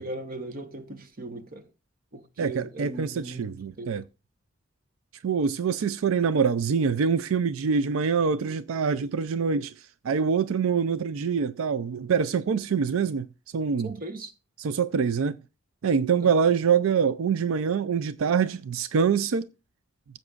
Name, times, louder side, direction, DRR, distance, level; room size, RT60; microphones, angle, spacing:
voice 1, 0.0-1.7 2.1-3.5 3.8-3.9 13.8-14.3 16.2-16.3, right 2 dB, 45° right, 1.0 m, -38 dB
voice 2, 2.4-4.0 5.2-9.7 10.0-13.3 13.5-13.9 14.6-15.4 15.8-19.5, right 6 dB, 85° right, 0.4 m, -25 dB
15.5 x 7.6 x 2.4 m
head